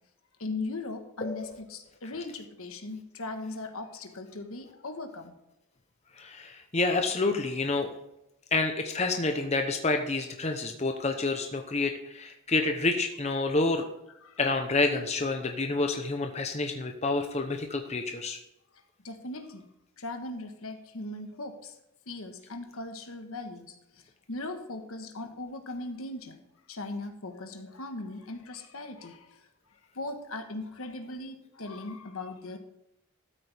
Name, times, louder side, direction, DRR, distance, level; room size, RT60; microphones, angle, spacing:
voice 1, 0.4-5.3 14.2-14.4 19.0-19.6 20.0-21.7 22.1-23.7 24.3-26.4 26.7-29.4 29.9-32.6, left 2 dB, 75° left, 6 dB, 1.4 m, -38 dB
voice 2, 1.2-1.6 6.2-7.9 8.5-13.9 14.4-18.4, left 3 dB, 30° left, 5 dB, 0.9 m, -28 dB
13.0 x 8.6 x 3.5 m, 0.84 s
head